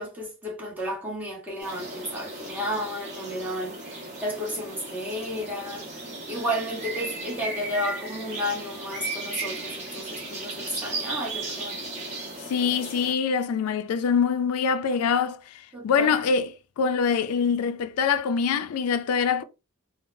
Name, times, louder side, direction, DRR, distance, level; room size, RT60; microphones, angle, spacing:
voice 1, 0.0-11.8 15.7-16.2, equal, 10° right, 1.0 m, -32 dB
sound 1, 1.6-13.1, right 2 dB, 35° right, 0.9 m, -36 dB
voice 2, 12.5-15.4 15.8-19.4, left 6 dB, 80° left, 0.4 m, -24 dB
3.6 x 2.0 x 2.6 m
head